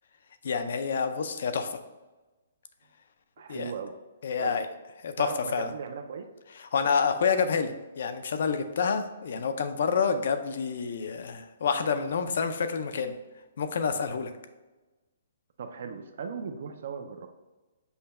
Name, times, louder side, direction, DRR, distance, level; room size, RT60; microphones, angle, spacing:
voice 1, 0.4-1.8 3.5-3.7 4.2-4.7 5.0-5.7 6.7-13.1 13.6-14.3, left 6 dB, 60° left, 9 dB, 0.4 m, -28 dB
voice 2, 3.4-3.9 4.4-4.6 5.2-6.2 15.6-17.3, right 6 dB, 55° right, 5 dB, 0.4 m, -37 dB
5.5 x 2.2 x 4.1 m, 1.1 s
hypercardioid pair, 170°, 0 cm